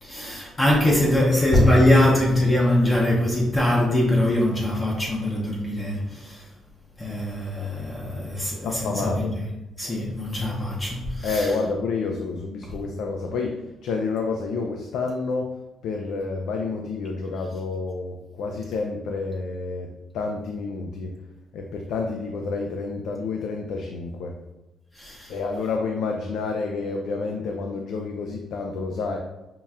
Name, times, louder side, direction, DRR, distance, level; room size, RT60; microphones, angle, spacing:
voice 1, 0.0-6.5 7.0-9.3 9.8-11.5 24.9-25.3, left 1 dB, 20° left, 0.6 m, -22 dB
voice 2, 8.6-9.3 11.2-15.5 15.8-21.2 21.5-24.4 25.3-29.2, left 4 dB, 75° left, 0.4 m, -29 dB
5.5 x 2.2 x 2.4 m
cardioid pair, 125°, 0 cm